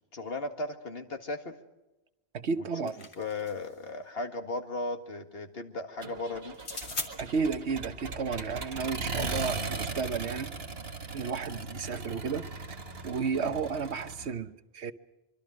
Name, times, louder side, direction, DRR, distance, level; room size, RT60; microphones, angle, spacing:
voice 1, 0.1-1.6 2.6-2.9 3.2-6.6 13.4-13.6, left 2 dB, 65° left, 2.0 m, -36 dB
voice 2, 2.3-3.1 7.2-10.5 11.1-12.5 13.0-14.9, right 5 dB, 85° right, 1.3 m, -32 dB
sound 1, 2.5-3.8 6.5-7.1, left 3 dB, 85° left, 2.4 m, -39 dB
Accelerating revving vroom, 6.0-14.3, right 3 dB, 65° right, 1.8 m, -38 dB
24.5 x 24.5 x 6.3 m
omnidirectional pair, 1.1 m